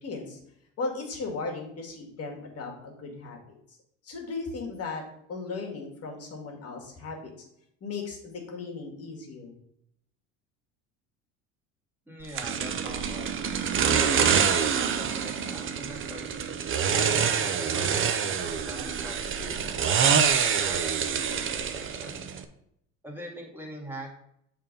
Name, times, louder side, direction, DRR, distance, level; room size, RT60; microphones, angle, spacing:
voice 1, 0.0-0.4 0.8-3.4 3.7-3.8 4.0-5.0 5.3-7.3 7.8-9.5, left 4 dB, 40° left, 1 dB, 2.0 m, -36 dB
voice 2, 12.1-13.3 13.8-16.2 16.9-22.3 23.0-24.1, equal, 5° right, -3 dB, 2.3 m, -43 dB
sound 1, 12.4-22.4, right 7 dB, 35° right, 0.7 m, -26 dB
6.7 x 3.7 x 5.3 m, 0.75 s
supercardioid pair, 85°, 36 cm